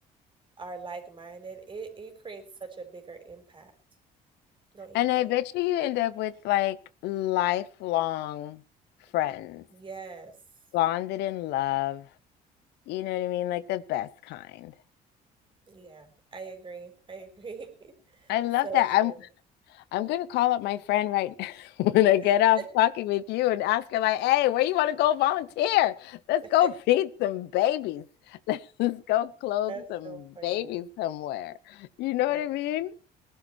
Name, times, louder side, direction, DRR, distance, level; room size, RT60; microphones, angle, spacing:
voice 1, 0.6-3.7 4.7-5.4 9.7-10.3 15.7-18.3 18.6-19.2 22.6-22.7 26.6-26.7 29.7-30.9 32.3-32.5, right 4 dB, 30° right, 4.5 m, -41 dB
voice 2, 4.9-6.8 7.0-8.6 9.1-9.6 10.7-12.1 12.9-14.7 18.3-19.1 19.9-30.1 30.4-32.9, left 14 dB, 85° left, 0.9 m, -26 dB
19.5 x 11.5 x 4.5 m
cardioid pair, 110°, 17 cm